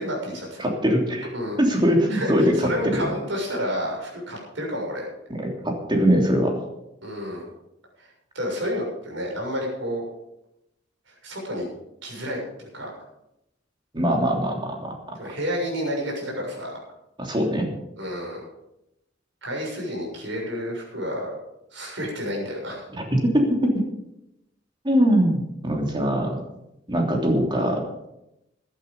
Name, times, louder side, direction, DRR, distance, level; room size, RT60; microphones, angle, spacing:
voice 1, 0.0-0.6 1.3-1.6 2.1-5.0 7.0-7.4 8.0-8.1 8.4-10.1 11.2-11.6 12.0-12.9 15.2-16.7 18.0-18.4 19.4-21.3 21.7-22.9, equal, 75° right, -1 dB, 6.9 m, -30 dB
voice 2, 0.6-1.3 1.6-2.5 2.8-3.0 5.3-6.5 13.9-14.9 17.2-17.7 22.9-23.9 24.8-26.4 26.9-28.0, equal, 25° right, 1 dB, 3.1 m, -22 dB
15.5 x 11.0 x 5.5 m, 0.86 s
head